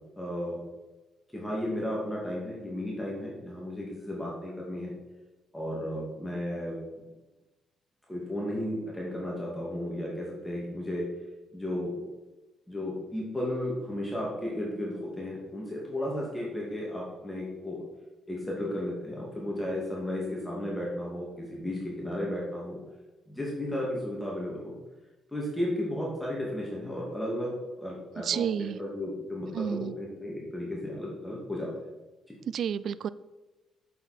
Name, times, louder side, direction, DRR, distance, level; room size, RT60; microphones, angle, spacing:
voice 1, 0.2-0.6 1.3-4.9 5.5-6.8 8.1-11.0 11.5-11.9 12.7-17.8 18.3-22.8 23.3-24.7 25.3-31.7 32.3-32.4, left 1 dB, 5° left, -4 dB, 2.4 m, -34 dB
voice 2, 28.2-28.8 29.5-30.0 32.5-33.1, right 8 dB, 65° right, 17 dB, 0.4 m, -30 dB
8.4 x 7.3 x 4.4 m, 1.1 s
cardioid pair, 90°, 0 cm